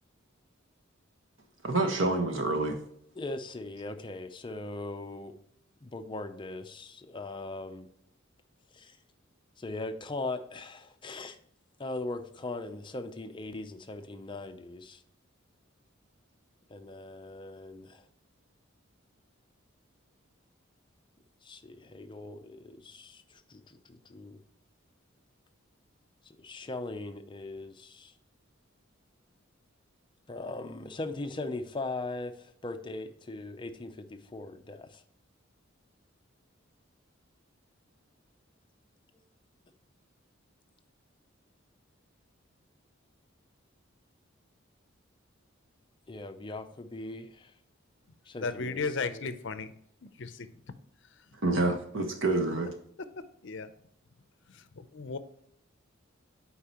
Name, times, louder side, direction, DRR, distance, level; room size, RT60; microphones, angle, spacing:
voice 1, 1.6-2.8 51.4-52.7, right 2 dB, 75° right, 4 dB, 1.3 m, -27 dB
voice 2, 3.2-5.3 5.8-7.9 8.7-9.0 9.6-11.4 11.8-15.0 16.7-18.0 21.4-24.4 26.3-28.1 30.3-35.0 46.1-47.5 48.3-49.2, left 2 dB, 25° left, 8 dB, 0.5 m, -40 dB
voice 3, 48.4-49.7 50.0-50.5 53.4-53.7 54.5-55.2, left 4 dB, 65° left, 12 dB, 0.6 m, -35 dB
8.4 x 5.0 x 2.9 m, 0.69 s
head